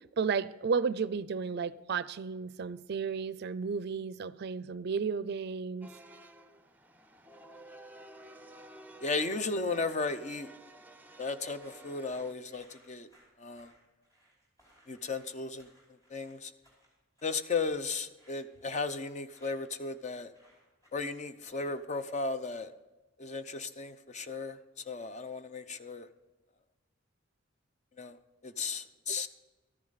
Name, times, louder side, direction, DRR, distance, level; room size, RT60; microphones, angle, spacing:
voice 1, 0.2-5.9, right 5 dB, 55° right, 17 dB, 0.4 m, -33 dB
sound 1, 5.8-12.3, right 1 dB, 10° right, 0.6 m, -52 dB
voice 2, 9.0-10.5 11.2-13.1 13.4-13.7 14.9-15.7 16.1-16.5 17.2-20.3 20.9-22.7 23.2-26.1 28.0-28.2 28.4-29.3, left 4 dB, 35° left, 11 dB, 0.6 m, -35 dB
sound 2, 11.6-22.3, equal, 20° left, 4.8 m, -65 dB
13.5 x 10.5 x 4.0 m, 1.2 s
head